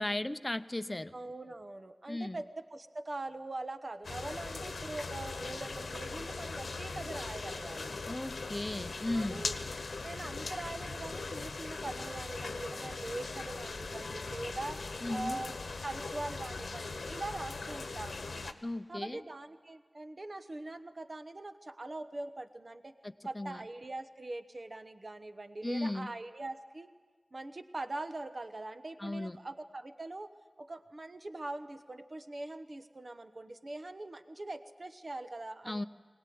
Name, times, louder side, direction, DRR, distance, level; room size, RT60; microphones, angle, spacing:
voice 1, 0.0-1.1 2.1-2.4 8.1-9.5 15.0-15.4 18.6-19.2 23.0-23.6 25.6-26.1 29.0-29.4 35.6-35.8, left 1 dB, 25° left, 12 dB, 0.7 m, -36 dB
voice 2, 1.1-7.9 9.1-9.5 10.0-14.8 15.1-15.6 15.8-18.5 18.9-22.9 23.2-26.9 27.3-30.3 30.6-35.9, right 2 dB, 45° right, 9 dB, 1.1 m, -42 dB
sound 1, 4.0-18.5, left 3 dB, 90° left, 1.1 m, -40 dB
21.5 x 19.0 x 9.4 m, 1.5 s
wide cardioid pair, 70°, 0 cm